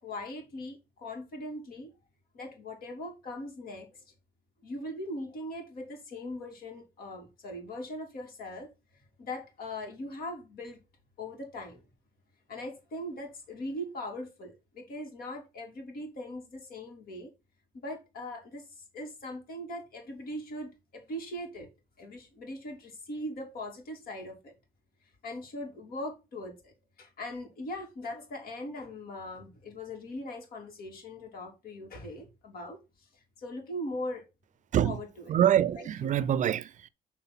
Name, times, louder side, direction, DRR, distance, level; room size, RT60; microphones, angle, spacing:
voice 1, 0.0-1.9 2.3-4.0 4.6-10.8 11.2-11.8 12.5-17.3 17.7-21.7 22.0-24.5 25.2-34.2 34.8-35.3 35.8-36.2, left 1 dB, 60° left, 3.7 m, -40 dB
voice 2, 35.3-36.9, right 10 dB, 50° right, 0.5 m, -25 dB
6.9 x 4.4 x 5.9 m
cardioid pair, 110°, 17 cm